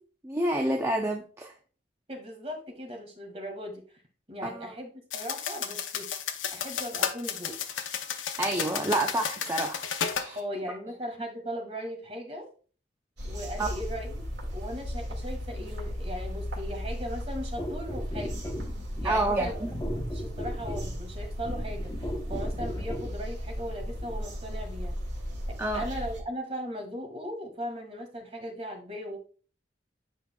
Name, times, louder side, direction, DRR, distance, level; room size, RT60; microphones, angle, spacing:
voice 1, 0.2-1.5 4.4-4.7 8.4-9.8 10.1-10.4 13.6-13.7 19.0-19.7 25.6-25.8, right 1 dB, 15° right, 0.5 m, -28 dB
voice 2, 2.1-3.8 4.3-6.1 6.5-7.6 10.3-12.5 13.2-18.4 19.0-21.9 22.3-24.9 25.5-29.2, equal, 30° right, 1.8 m, -38 dB
sound 1, 5.1-10.3, left 7 dB, 90° left, 0.7 m, -33 dB
sound 2, 13.2-26.2, equal, 70° right, 2.0 m, -36 dB
sound 3, 17.6-23.2 24.0-24.2, equal, 20° left, 1.0 m, -36 dB
8.0 x 5.2 x 2.3 m
head